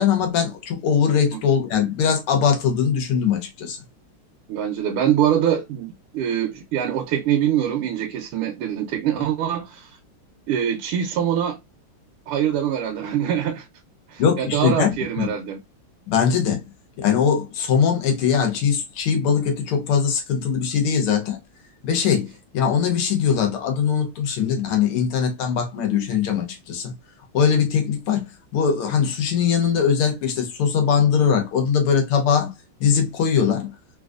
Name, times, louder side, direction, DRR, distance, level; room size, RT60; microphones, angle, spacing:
voice 1, 0.0-3.8 14.2-15.3 16.1-16.6 17.0-21.4 21.8-22.3 22.5-26.9 27.3-32.5 32.8-33.7, left 7 dB, 80° left, 1.8 m, -21 dB
voice 2, 4.5-9.9 10.5-11.6 12.3-13.7 14.1-15.6, right 9 dB, 80° right, 1.5 m, -24 dB
3.9 x 2.6 x 2.4 m
omnidirectional pair, 2.4 m